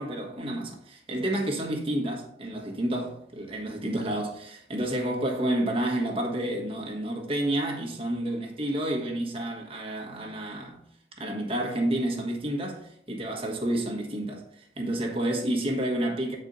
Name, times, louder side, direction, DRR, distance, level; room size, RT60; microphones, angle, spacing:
voice 1, 0.0-10.8 11.2-16.4, right 1 dB, 30° right, 1.4 m, -30 dB
8.2 x 4.5 x 3.9 m
head